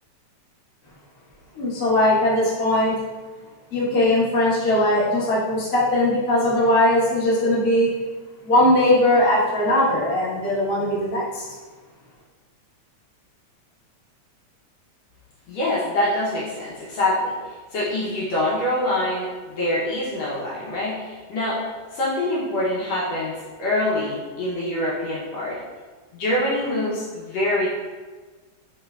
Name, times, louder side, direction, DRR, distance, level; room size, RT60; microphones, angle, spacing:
voice 1, 1.5-3.0 3.7-7.9 8.4-11.5, left 1 dB, 45° left, -8 dB, 1.2 m, -20 dB
voice 2, 15.5-25.6 26.1-27.7, left 1 dB, 70° left, -7 dB, 1.8 m, -25 dB
5.6 x 3.8 x 2.3 m, 1.4 s
omnidirectional pair, 3.5 m